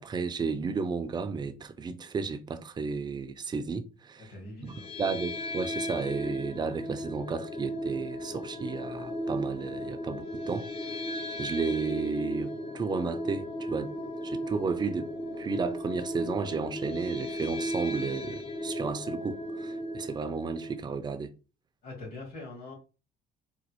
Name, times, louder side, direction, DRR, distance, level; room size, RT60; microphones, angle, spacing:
voice 1, 0.0-4.3 4.6-11.1 11.4-13.9 14.2-15.1 15.4-21.3, right 5 dB, 25° right, 0.4 m, -33 dB
voice 2, 4.3-4.9 21.8-22.7, left 2 dB, 60° left, 2.0 m, -43 dB
sound 1, 4.7-20.8, equal, 35° left, 0.5 m, -36 dB
4.1 x 2.2 x 3.0 m
cardioid pair, 110°, 17 cm